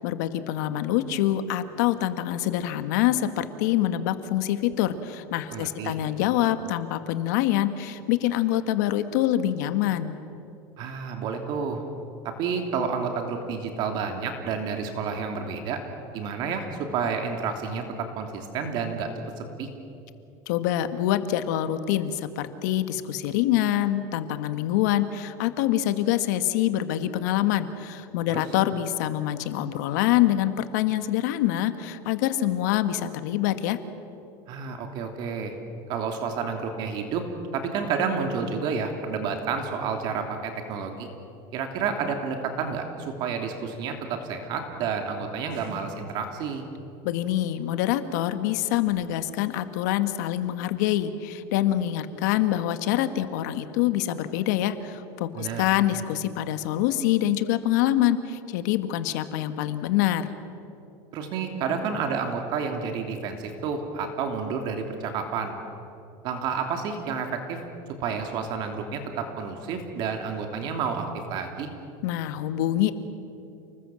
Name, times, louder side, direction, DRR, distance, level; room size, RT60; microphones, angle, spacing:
voice 1, 0.0-10.1 20.5-33.8 47.0-60.3 72.0-72.9, left 12 dB, 80° left, 10 dB, 1.7 m, -25 dB
voice 2, 5.5-6.0 10.8-11.8 12.2-15.8 16.1-19.1 19.4-19.7 28.3-28.4 34.5-35.6 35.9-37.2 37.5-41.1 41.5-46.7 55.3-55.6 61.1-65.5 66.2-67.6 68.0-71.7, right 5 dB, 50° right, 4 dB, 3.0 m, -30 dB
29.5 x 20.0 x 7.7 m, 2.7 s
supercardioid pair, 145°, 9 cm